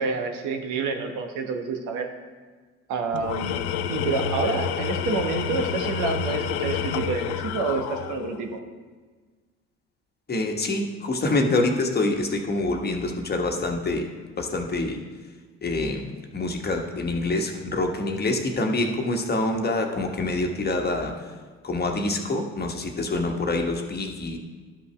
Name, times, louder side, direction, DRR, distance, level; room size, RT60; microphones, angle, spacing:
voice 1, 0.0-2.1 2.9-8.6, right 4 dB, 65° right, 5 dB, 1.1 m, -28 dB
Tools, 3.1-8.5, left 7 dB, 75° left, 0.5 m, -29 dB
voice 2, 10.3-14.1 14.4-15.0 15.6-21.3 21.6-24.4, left 2 dB, 30° left, 3 dB, 1.4 m, -26 dB
12.0 x 5.4 x 3.3 m, 1.4 s
hypercardioid pair, 60°, 33 cm